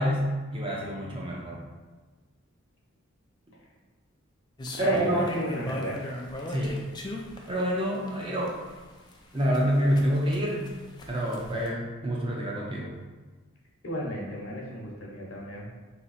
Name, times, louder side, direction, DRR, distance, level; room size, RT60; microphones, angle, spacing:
voice 1, 0.0-1.6 4.8-5.2 6.5-6.8 7.5-8.6 9.3-10.7 11.1-12.9, equal, 20° right, -3 dB, 0.6 m, -27 dB
sound 1, 4.6-11.7, left 1 dB, 20° left, 0.3 m, -38 dB
voice 2, 4.8-6.2 13.8-15.7, equal, 65° left, -2 dB, 0.8 m, -34 dB
3.2 x 2.9 x 4.0 m, 1.3 s
head